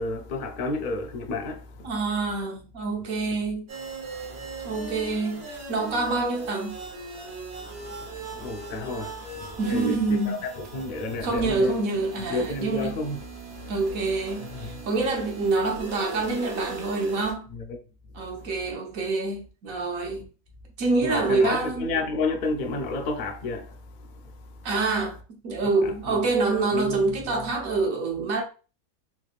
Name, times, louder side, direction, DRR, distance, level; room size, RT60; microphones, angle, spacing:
voice 1, 0.0-1.9 7.8-11.8 12.3-13.2 14.4-14.8 17.5-17.8 18.4-18.7 21.0-24.1 25.8-26.2 26.7-27.5, left 3 dB, 75° left, 0.4 m, -31 dB
voice 2, 1.8-3.7 4.6-6.8 9.6-10.4 11.2-12.9 13.7-17.5 18.1-20.3 20.8-21.9 24.6-28.4, right 3 dB, 70° right, 1.3 m, -26 dB
sound 1, 3.7-17.3, right 3 dB, 50° right, 1.1 m, -39 dB
3.4 x 3.2 x 2.4 m
omnidirectional pair, 1.5 m